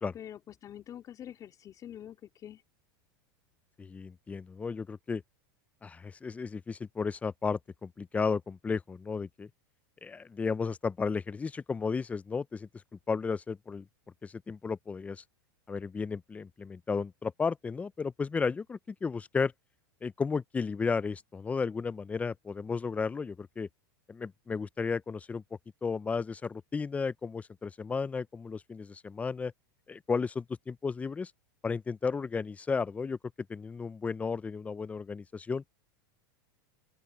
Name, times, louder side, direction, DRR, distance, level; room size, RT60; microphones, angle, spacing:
voice 1, 0.1-2.6, left 10 dB, 30° left, 3.5 m, -46 dB
voice 2, 3.8-5.2 5.8-9.5 10.0-12.7 13.1-13.9 14.2-15.2 15.7-19.5 20.0-23.7 24.1-25.4 25.8-29.5 29.9-31.3 31.6-33.2 33.5-35.6, left 5 dB, 10° left, 0.4 m, -33 dB
open air
supercardioid pair, 130°, 12 cm